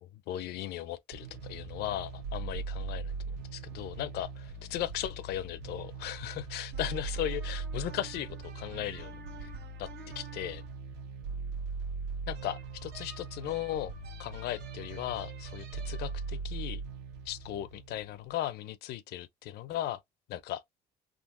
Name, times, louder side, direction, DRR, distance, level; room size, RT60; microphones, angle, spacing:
voice 1, 0.0-9.1 9.4-9.5 9.8-9.9 10.2-10.6 12.3-13.9 14.2-16.8 17.3-20.0 20.3-20.6, left 13 dB, 75° left, 0.5 m, -37 dB
sound 1, 1.1-18.4, right 4 dB, 85° right, 0.9 m, -40 dB
3.7 x 2.5 x 2.5 m
cardioid pair, 110°, 17 cm